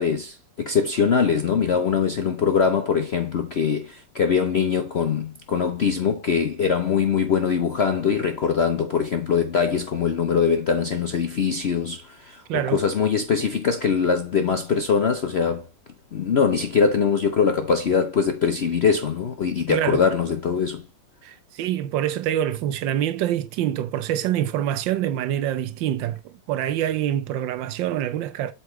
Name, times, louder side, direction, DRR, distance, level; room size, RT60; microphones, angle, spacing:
voice 1, 0.0-15.7 16.1-20.8, left 6 dB, 65° left, 0.6 m, -22 dB
voice 2, 12.5-12.8 19.7-20.1 21.2-28.5, right 11 dB, 80° right, 1.3 m, -26 dB
8.0 x 5.8 x 3.0 m
omnidirectional pair, 2.0 m